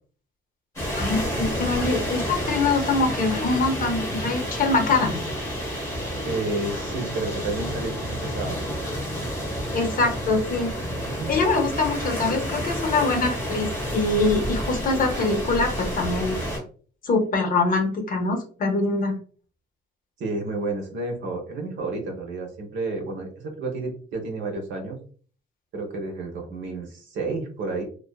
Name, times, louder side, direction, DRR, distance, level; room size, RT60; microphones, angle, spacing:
sound 1, 0.8-16.6, equal, 15° left, 0.9 m, -30 dB
voice 1, 1.0-5.2 9.7-10.7 11.3-16.4 17.0-19.2, left 3 dB, 40° left, 3 dB, 0.6 m, -24 dB
voice 2, 6.2-8.6 11.0-11.3 20.2-25.0 25.7-27.8, right 3 dB, 65° right, 3 dB, 0.8 m, -31 dB
2.4 x 2.4 x 2.2 m, 0.42 s
cardioid pair, 165°, 21 cm